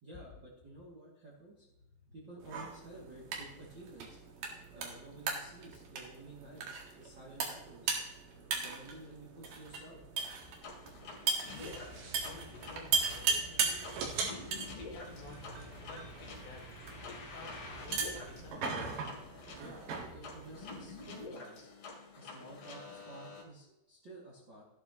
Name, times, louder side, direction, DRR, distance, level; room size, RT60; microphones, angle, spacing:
voice 1, 0.0-4.2 4.7-7.9 8.5-10.0 19.6-21.7 22.2-24.6, right 2 dB, 35° right, -4 dB, 1.9 m, -52 dB
sound 1, 2.4-21.3, right 5 dB, 60° right, 2.8 m, -39 dB
sound 2, 10.6-23.4, left 3 dB, 55° left, 3.9 m, -48 dB
voice 2, 11.4-11.9 12.2-19.0, left 4 dB, 70° left, 0 dB, 4.4 m, -52 dB
sound 3, 11.5-18.5, right 4 dB, 85° right, 4.5 m, -46 dB
14.0 x 12.0 x 2.9 m, 0.94 s
omnidirectional pair, 5.3 m